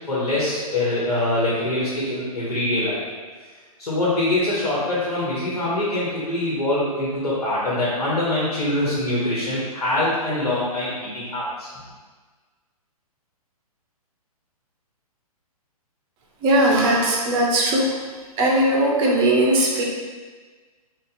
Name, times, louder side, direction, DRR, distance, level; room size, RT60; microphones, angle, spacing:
voice 1, 0.1-3.0 3.8-11.7, left 1 dB, 80° left, -8 dB, 1.3 m, -24 dB
voice 2, 16.4-17.8 18.4-19.8, right 1 dB, 25° right, -2 dB, 0.6 m, -19 dB
2.7 x 2.4 x 3.8 m, 1.4 s
figure-of-eight pair, 125°, 19 cm